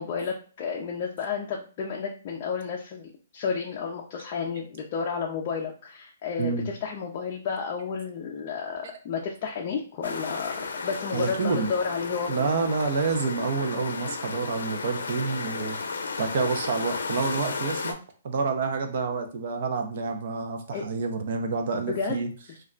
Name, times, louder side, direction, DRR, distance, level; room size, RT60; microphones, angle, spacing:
voice 1, 0.0-12.5 20.7-20.8 21.9-22.3, left 5 dB, 35° left, -1 dB, 0.4 m, -32 dB
sound 1, 10.0-17.9, left 4 dB, 85° left, 0.5 m, -33 dB
voice 2, 11.1-11.7 12.3-15.8 16.2-18.0 18.2-22.3, right 4 dB, 50° right, 4 dB, 0.5 m, -28 dB
2.3 x 2.2 x 3.7 m, 0.40 s
hypercardioid pair, 165°, 0 cm